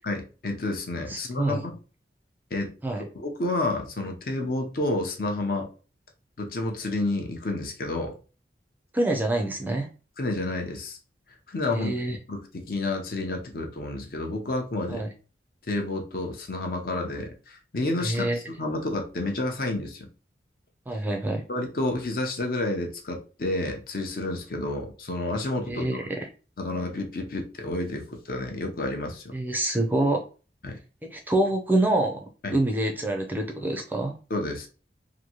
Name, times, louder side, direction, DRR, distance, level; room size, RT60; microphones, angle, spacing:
voice 1, 0.0-1.8 2.5-2.7 3.2-5.7 6.4-8.2 10.2-11.0 11.5-11.9 12.3-15.0 15.7-20.1 21.5-25.9 26.6-29.2 30.6-30.8 32.4-32.6 34.3-34.7, left 2 dB, 55° left, 3 dB, 0.6 m, -30 dB
voice 2, 1.1-1.6 2.8-3.0 8.9-9.9 11.7-12.2 14.9-15.1 18.0-18.4 20.9-21.4 25.7-26.3 29.3-30.2 31.0-34.2, right 1 dB, 10° right, 2 dB, 0.4 m, -26 dB
2.9 x 2.6 x 2.8 m, 0.35 s
head